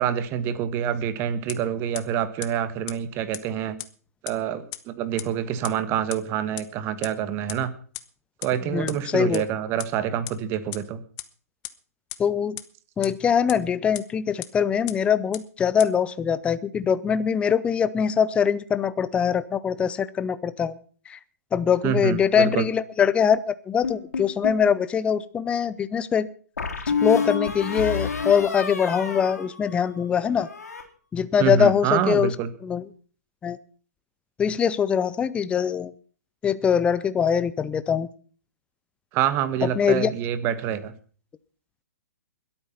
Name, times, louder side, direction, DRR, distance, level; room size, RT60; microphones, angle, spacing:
voice 1, 0.0-3.7 4.2-7.7 8.4-11.0 21.8-22.7 31.4-32.5 39.1-40.9, right 9 dB, 25° right, 14 dB, 1.4 m, -26 dB
sound 1, 1.5-1.6 1.9-2.0 2.4-2.5 2.9-3.0 3.3-3.4 3.8-3.9 4.3-4.4 4.7-4.8 5.2-5.3 5.6-5.7 6.1-6.2 6.6-6.7 7.0-7.1 7.5-7.6 7.9-8.0 8.4-8.5 8.9-9.0 9.3-9.4 9.8-9.9 10.3-10.4 10.7-10.8 11.2-11.3 11.6-11.7 12.1-12.2 12.6-12.7 13.0-13.1 13.5-13.6 13.9-14.0 14.4-14.5 14.9-15.0 15.3-15.4 15.8-15.9, left 20 dB, 30° left, 1.1 m, -33 dB
voice 2, 8.7-9.4 12.2-12.6 13.0-20.8 21.1-21.2 21.5-26.3 27.0-30.5 31.1-32.3 32.6-32.8 33.4-33.6 34.4-35.9 36.4-38.1 39.6-40.1, left 7 dB, 10° left, 16 dB, 0.7 m, -23 dB
sound 2, 23.8-24.7 26.6-30.1 30.4-30.8, left 5 dB, 70° left, 3.4 m, -29 dB
21.5 x 8.8 x 5.8 m, 0.42 s
figure-of-eight pair, 120°, 9 cm